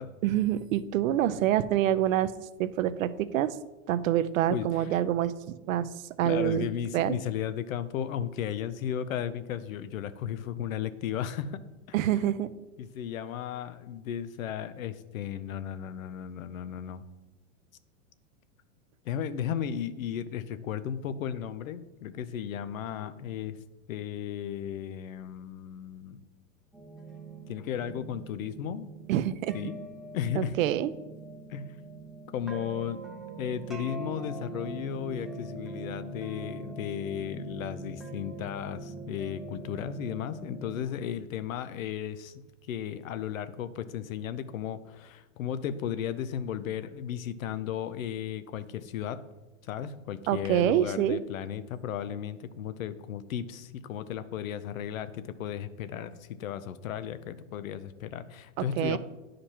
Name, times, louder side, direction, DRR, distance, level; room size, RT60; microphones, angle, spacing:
voice 1, 0.2-2.3 2.6-3.6 3.9-5.9 6.2-6.7 6.9-7.2 11.9-12.5 29.1-29.5 30.4-30.9 50.3-51.2 58.8-59.0, right 12 dB, 80° right, 14 dB, 0.6 m, -26 dB
voice 2, 4.5-4.9 6.2-11.6 12.8-17.0 19.0-23.6 23.9-26.2 27.5-28.9 29.5-29.8 30.1-30.6 31.5-31.8 32.3-33.0 33.4-42.3 42.7-49.2 49.6-59.0, left 9 dB, 85° left, 13 dB, 0.6 m, -35 dB
sound 1, 26.7-40.8, right 2 dB, ahead, 0.5 m, -42 dB
9.8 x 5.1 x 2.9 m, 1.1 s
supercardioid pair, 135°, 39 cm